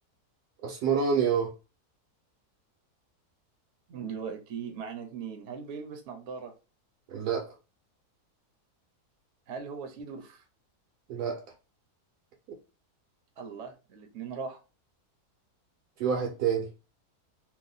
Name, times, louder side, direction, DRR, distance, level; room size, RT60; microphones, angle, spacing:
voice 1, 0.6-1.5 7.1-7.4 11.1-11.4 16.0-16.7, right 6 dB, 85° right, 1.2 m, -27 dB
voice 2, 3.9-6.5 9.5-10.4 13.4-14.6, right 6 dB, 60° right, 0.8 m, -39 dB
3.0 x 2.1 x 3.9 m
omnidirectional pair, 1.6 m